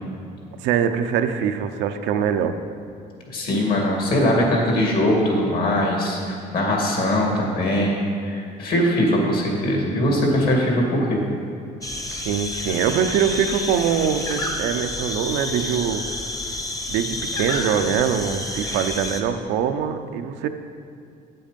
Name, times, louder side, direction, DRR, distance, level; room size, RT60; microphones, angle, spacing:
voice 1, 0.6-2.6 12.2-16.0 16.9-20.5, right 8 dB, 90° right, 7 dB, 0.6 m, -23 dB
voice 2, 3.3-11.2, left 1 dB, 65° left, -1 dB, 2.4 m, -21 dB
sound 1, 11.8-19.2, left 2 dB, 20° left, 0.9 m, -29 dB
8.5 x 7.7 x 5.2 m, 2.3 s
cardioid pair, 110°, 17 cm